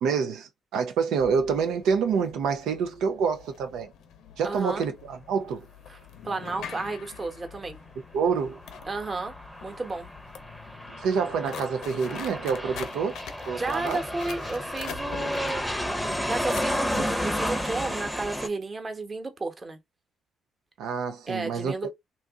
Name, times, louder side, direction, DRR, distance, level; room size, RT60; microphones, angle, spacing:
voice 1, 0.0-3.9 4.4-5.6 8.1-8.6 10.9-13.2 13.5-14.0 20.8-21.9, right 6 dB, 85° right, 0.5 m, -27 dB
sound 1, 1.2-18.1, left 8 dB, 80° left, 0.7 m, -45 dB
voice 2, 4.4-4.8 5.9-6.0 6.2-7.8 8.8-9.3 9.6-10.1 13.6-15.7 16.3-19.8 21.3-21.9, right 3 dB, 30° right, 1.0 m, -32 dB
Aircraft, 8.3-18.5, equal, 5° left, 0.7 m, -32 dB
2.9 x 2.5 x 3.5 m
cardioid pair, 90°, 0 cm